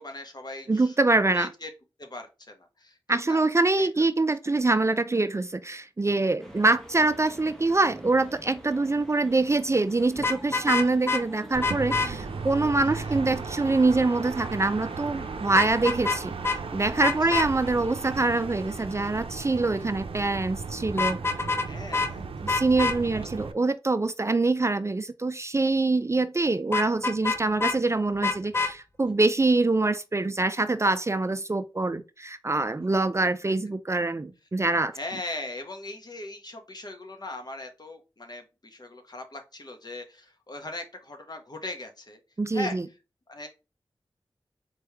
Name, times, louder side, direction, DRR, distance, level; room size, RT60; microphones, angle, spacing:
voice 1, 0.0-1.0 1.3-1.7 2.0-3.0 3.3-3.4 3.8-3.9 4.4-4.6 12.8-13.2 17.2-17.6 21.7-22.6 23.1-23.3 34.9-42.2 42.5-42.8 43.3-43.5, left 2 dB, 45° left, 1.1 m, -39 dB
voice 2, 0.7-1.5 3.1-21.2 22.4-34.9 42.4-42.8, right 3 dB, 30° right, 0.4 m, -25 dB
sound 1, 6.4-15.9, equal, 5° left, 1.4 m, -46 dB
Vehicle horn car horn honking, 10.2-11.2 11.6-12.1 15.5-16.2 16.4-16.6 17.0-17.5 20.9-21.7 21.9-22.1 22.5-23.0 26.7-27.8 28.2-28.7, left 4 dB, 25° left, 0.6 m, -26 dB
sound 2, 11.5-23.5, right 4 dB, 90° right, 0.5 m, -36 dB
4.3 x 3.2 x 3.4 m
wide cardioid pair, 55°, 9 cm